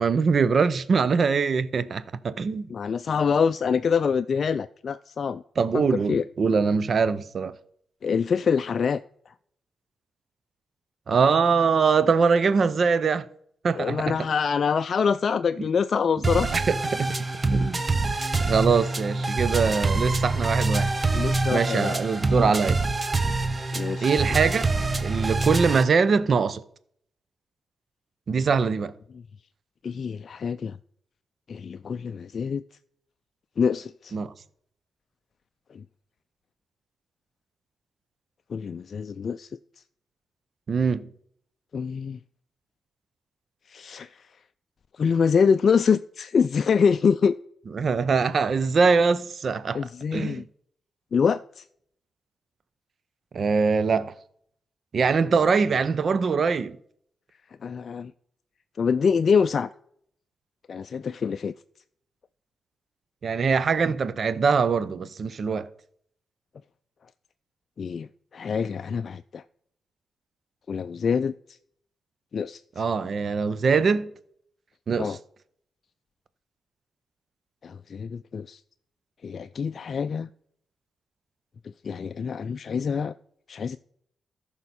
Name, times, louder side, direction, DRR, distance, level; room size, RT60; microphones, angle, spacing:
voice 1, 0.0-2.7 5.6-7.5 11.1-13.3 13.6-14.2 15.6-15.7 16.5-17.1 17.5-17.8 18.4-20.9 21.5-22.8 24.0-24.7 25.0-26.6 28.3-28.9 34.1-34.3 40.7-41.1 47.7-50.4 53.3-54.1 54.9-56.8 63.2-65.7 72.8-74.1 74.9-75.2, right 5 dB, 60° right, 0.7 m, -23 dB
voice 2, 2.7-5.4 5.7-5.8 6.1-6.2 8.0-9.0 9.3-9.4 13.8-16.6 21.1-22.0 23.7-24.2 29.8-30.8 31.5-32.6 33.6-34.1 35.7-35.8 38.5-39.5 41.7-42.2 43.7-44.2 45.0-47.3 49.7-50.4 51.1-51.6 57.6-58.1 58.8-59.7 60.7-61.5 67.8-69.4 70.7-71.3 72.3-72.8 75.0-75.2 77.6-78.6 79.2-80.3 81.8-83.1 83.5-83.8, left 6 dB, 60° left, 0.3 m, -25 dB
sound 1, 16.2-25.8, right 3 dB, 35° right, 1.0 m, -25 dB
14.0 x 5.6 x 4.2 m
supercardioid pair, 50°, 0 cm